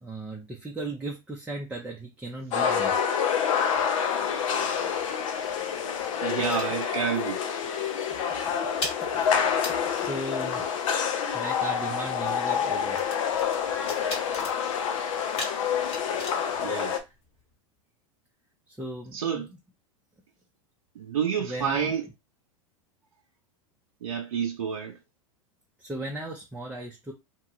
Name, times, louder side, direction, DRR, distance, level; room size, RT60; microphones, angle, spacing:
voice 1, 0.0-2.9 8.4-8.5 9.1-9.3 9.9-10.6 11.3-13.0 18.8-19.5 21.4-21.9 25.8-27.1, right 1 dB, 5° right, 0.6 m, -36 dB
sound 1, 2.5-17.0, left 7 dB, 70° left, 0.6 m, -27 dB
sound 2, 4.0-7.4 7.6-7.9 8.2-17.6, left 2 dB, 35° left, 1.1 m, -41 dB
voice 2, 4.6-5.0 6.2-7.4 16.6-17.0 19.1-19.5 21.0-22.1 24.0-25.0, right 7 dB, 85° right, 0.6 m, -29 dB
3.0 x 2.2 x 2.9 m
hypercardioid pair, 105°, 18 cm